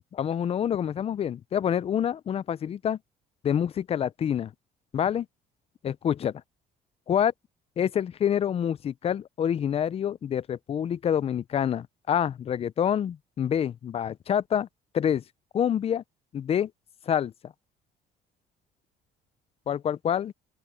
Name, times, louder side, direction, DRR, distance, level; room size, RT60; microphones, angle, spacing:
voice 1, 0.1-3.0 3.4-4.5 4.9-5.3 5.8-6.3 7.1-7.3 7.8-14.7 14.9-15.2 15.5-16.0 16.3-16.7 17.1-17.5 19.7-20.3, left 9 dB, 35° left, 0.4 m, -27 dB
open air
cardioid pair, 110°, 17 cm